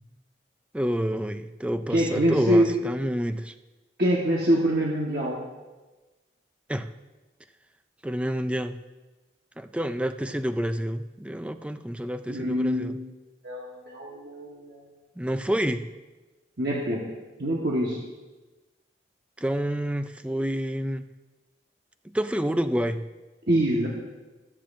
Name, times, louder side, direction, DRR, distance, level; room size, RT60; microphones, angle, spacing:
voice 1, 0.7-3.5 6.7-6.9 8.0-8.8 9.6-13.0 15.2-15.9 19.4-21.1 22.1-23.0, equal, 5° right, 9 dB, 0.3 m, -28 dB
voice 2, 1.9-2.7 4.0-5.4 12.3-13.0 13.4-14.8 16.6-17.0 17.4-18.0 23.5-23.9, equal, 60° right, -4 dB, 1.4 m, -24 dB
20.0 x 7.5 x 2.6 m, 1.2 s
head